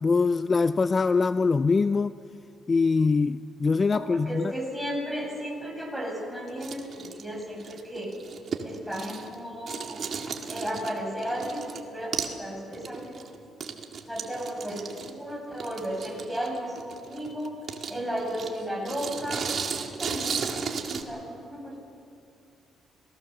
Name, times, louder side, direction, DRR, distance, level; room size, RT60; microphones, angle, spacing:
voice 1, 0.0-2.1 2.7-4.5, left 4 dB, 35° left, 13 dB, 0.4 m, -23 dB
voice 2, 3.9-8.1 8.6-10.0 10.5-13.3 14.1-17.5 17.9-19.4 19.7-21.8, equal, ahead, -1 dB, 7.2 m, -34 dB
sound 1, 6.5-9.4 9.7-11.8 12.1-12.4 12.7-21.0, right 6 dB, 55° right, 2.0 m, -35 dB
26.5 x 18.0 x 6.8 m, 2.5 s
cardioid pair, 90°, 0 cm